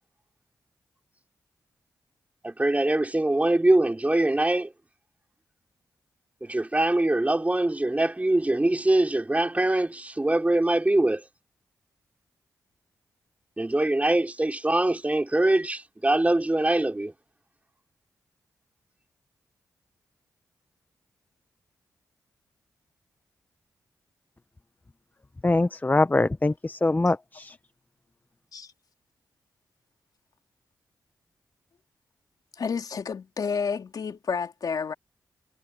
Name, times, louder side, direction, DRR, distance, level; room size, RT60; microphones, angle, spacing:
voice 1, 2.4-4.7 6.4-11.3 13.6-17.1, right 1 dB, 20° right, 4.8 m, -23 dB
voice 2, 25.4-27.6, left 2 dB, 25° left, 0.9 m, -23 dB
voice 3, 32.5-34.9, left 6 dB, 65° left, 3.2 m, -30 dB
supercardioid pair, 45°, 7 cm